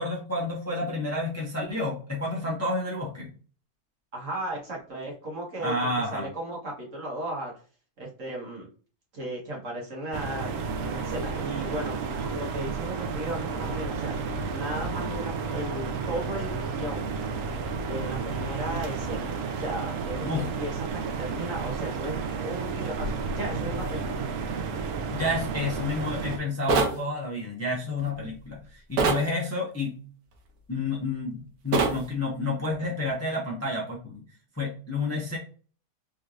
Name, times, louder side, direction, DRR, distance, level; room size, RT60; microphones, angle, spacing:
voice 1, 0.0-3.3 5.6-6.3 20.2-20.5 25.1-30.0 30.7-34.2 34.6-35.4, left 2 dB, 10° left, -3 dB, 0.9 m, -30 dB
voice 2, 4.1-5.7 6.1-7.5 8.0-8.7 9.1-10.5 10.8-14.1 14.5-17.1 17.9-24.3, right 1 dB, 50° right, -2 dB, 1.5 m, -35 dB
sound 1, 10.1-26.4, right 5 dB, 70° right, 0.8 m, -32 dB
sound 2, 26.7-27.0 29.0-29.3 31.7-32.0, right 4 dB, 85° right, 1.4 m, -23 dB
3.8 x 3.2 x 2.5 m, 0.40 s
omnidirectional pair, 1.8 m